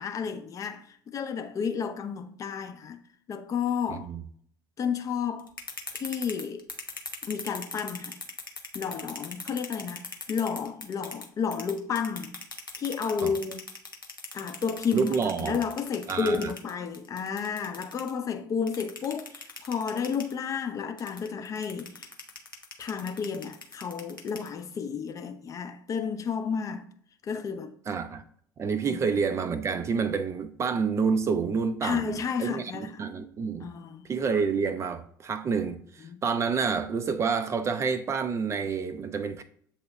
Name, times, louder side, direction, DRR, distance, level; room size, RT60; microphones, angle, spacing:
voice 1, 0.0-3.0 3.3-4.1 4.8-5.5 5.9-6.6 7.3-8.2 8.7-12.3 12.8-13.7 14.3-22.1 22.8-26.9 27.2-27.7 28.9-29.0 31.8-33.0 33.6-34.1 36.0-36.2, left 6 dB, 30° left, 0.5 m, -32 dB
voice 2, 3.9-4.2 13.2-13.3 14.9-15.6 16.1-16.5 27.9-28.2 28.6-33.7 34.1-39.4, right 5 dB, 25° right, 0.4 m, -28 dB
sound 1, 5.4-11.2 11.5-18.1 18.7-20.3 21.0-24.7, left 3 dB, 90° left, 0.5 m, -39 dB
7.7 x 2.8 x 2.3 m
figure-of-eight pair, 65°, 11 cm